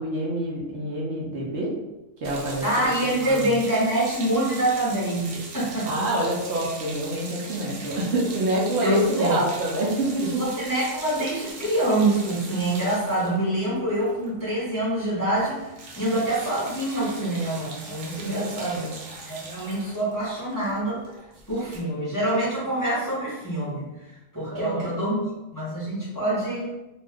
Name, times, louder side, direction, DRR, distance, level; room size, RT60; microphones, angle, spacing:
voice 1, 0.0-1.7 2.2-3.5 5.9-10.4 18.2-18.9 24.5-24.9, right 1 dB, 65° right, -3 dB, 0.8 m, -27 dB
sound 1, 2.2-14.6 14.9-15.1 15.4-21.8, right 3 dB, 85° right, 1.0 m, -40 dB
voice 2, 2.6-6.1 8.8-9.4 10.2-18.9 19.2-21.0 21.5-23.9 24.3-25.2 25.5-26.7, right 1 dB, 20° left, -8 dB, 0.8 m, -25 dB
2.6 x 2.2 x 3.4 m, 1.0 s
omnidirectional pair, 1.3 m